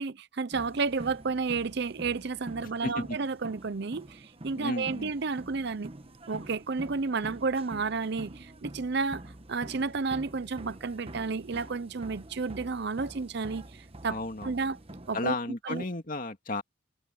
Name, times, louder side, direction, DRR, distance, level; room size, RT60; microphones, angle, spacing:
voice 1, 0.0-5.9 6.3-9.2 9.5-14.2 14.4-14.8 15.1-15.3 15.6-15.8, right 4 dB, 50° right, 0.6 m, -31 dB
sound 1, 0.5-15.3, right 1 dB, 30° right, 1.2 m, -46 dB
voice 2, 2.6-3.2 4.5-5.1 14.1-14.5 15.1-16.6, left 2 dB, 40° left, 2.4 m, -33 dB
head